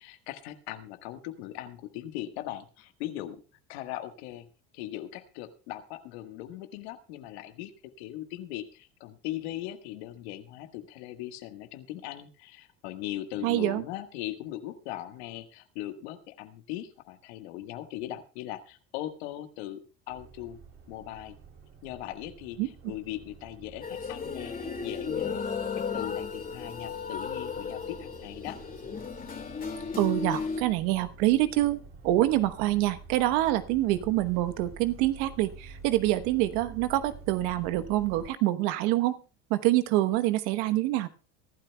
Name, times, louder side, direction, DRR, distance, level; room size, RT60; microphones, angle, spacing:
voice 1, 0.0-3.4 3.7-4.5 4.7-7.7 8.0-20.6 20.9-21.4 21.8-25.5 25.7-28.6, left 13 dB, 80° left, 8 dB, 1.6 m, -39 dB
voice 2, 13.4-13.8 22.6-22.7 29.9-39.1 39.5-41.1, right 15 dB, 70° right, 11 dB, 1.2 m, -26 dB
sound 1, 20.1-38.3, right 4 dB, 40° right, 2.9 m, -49 dB
sound 2, 23.8-30.6, left 5 dB, 25° left, 2.3 m, -35 dB
23.5 x 12.0 x 2.3 m, 0.35 s
hypercardioid pair, 85°, 32 cm